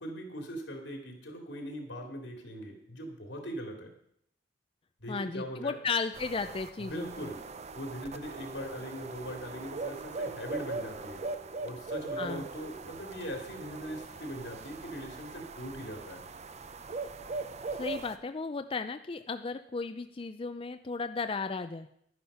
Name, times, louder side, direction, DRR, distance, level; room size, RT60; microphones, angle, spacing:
voice 1, 0.0-3.9 5.0-5.8 6.8-7.4 7.7-11.2 11.6-16.2, equal, 90° left, 2 dB, 3.0 m, -41 dB
voice 2, 5.1-7.3 12.2-12.4 17.7-21.9, left 4 dB, 30° left, 9 dB, 0.4 m, -35 dB
sound 1, 6.1-18.2, right 3 dB, 40° right, 0.6 m, -40 dB
11.5 x 10.0 x 5.6 m, 0.71 s
head